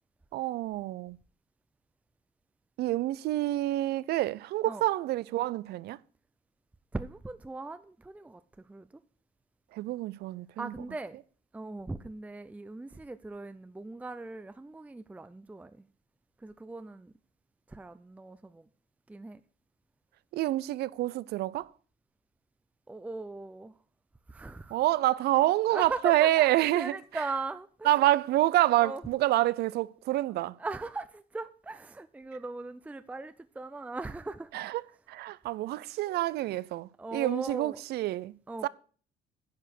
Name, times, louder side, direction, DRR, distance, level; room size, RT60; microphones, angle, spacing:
voice 1, 0.3-1.2 2.8-6.0 9.7-10.7 20.3-21.7 24.7-27.0 27.8-30.6 34.5-34.8 35.1-38.3 38.6-38.7, right 16 dB, 70° right, 0.5 m, -27 dB
voice 2, 6.9-9.0 10.6-11.2 11.5-15.9 16.4-17.1 17.7-18.7 19.1-19.4 22.9-23.8 24.3-24.8 25.7-27.9 28.8-29.0 30.6-34.5 36.1-36.3 37.0-37.8 38.5-38.7, right 3 dB, 10° right, 0.5 m, -39 dB
10.5 x 4.9 x 8.0 m
cardioid pair, 110°, 17 cm